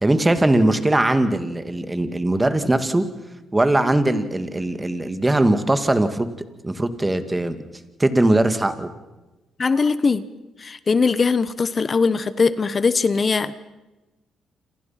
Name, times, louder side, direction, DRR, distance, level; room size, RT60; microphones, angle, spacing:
voice 1, 0.0-3.1 3.5-6.3 6.6-7.6 8.0-8.9, right 1 dB, 15° right, 9 dB, 2.1 m, -20 dB
voice 2, 9.6-10.2 10.6-13.5, left 4 dB, 35° left, 15 dB, 1.0 m, -20 dB
28.0 x 27.0 x 5.9 m, 1.1 s
cardioid pair, 90°, 0 cm